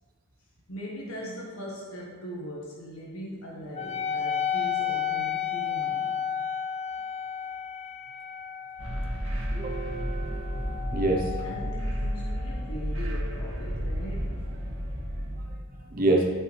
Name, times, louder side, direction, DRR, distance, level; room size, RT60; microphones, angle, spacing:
voice 1, 0.7-6.1 11.4-14.6, equal, 90° left, -4 dB, 1.5 m, -40 dB
Wind instrument woodwind instrument, 3.8-12.7, left 8 dB, 30° left, 0.3 m, -33 dB
sound 1, 8.8-15.5, equal, 65° right, 2.0 m, -32 dB
voice 2, 9.5-11.3 15.9-16.3, right 2 dB, 40° right, 0 dB, 1.0 m, -27 dB
13.5 x 5.7 x 3.4 m, 1.5 s
head